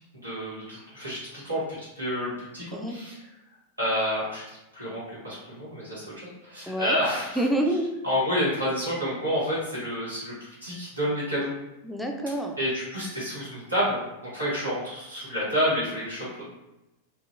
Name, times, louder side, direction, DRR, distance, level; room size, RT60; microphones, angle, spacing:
voice 1, 0.1-1.6 2.0-3.2 3.8-7.4 8.0-11.5 12.6-16.4, equal, 80° right, -8 dB, 1.2 m, -29 dB
voice 2, 6.6-7.0 7.4-7.9 11.8-12.6, right 1 dB, ahead, 2 dB, 0.4 m, -27 dB
2.8 x 2.3 x 2.5 m, 0.97 s
figure-of-eight pair, 90°, 0 cm